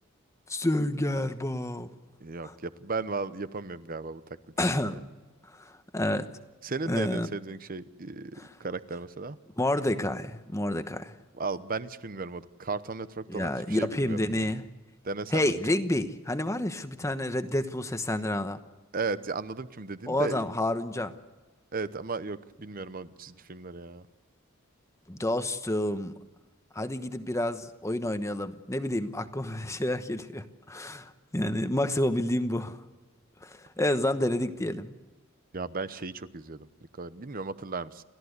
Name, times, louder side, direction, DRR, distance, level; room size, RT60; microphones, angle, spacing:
voice 1, 0.5-1.9 2.4-2.5 4.6-5.0 5.4-6.3 6.9-7.3 8.3-8.6 9.6-11.1 13.3-14.6 15.3-18.6 20.1-21.1 25.1-26.2 26.7-32.8 33.4-34.9, left 1 dB, 15° left, 9 dB, 1.1 m, -29 dB
voice 2, 2.2-4.2 4.9-5.0 6.6-9.4 11.4-14.5 15.0-15.4 18.9-20.4 21.7-24.1 35.5-36.7 37.0-38.0, right 4 dB, 45° right, 14 dB, 0.9 m, -35 dB
30.0 x 14.0 x 8.1 m, 1.3 s
head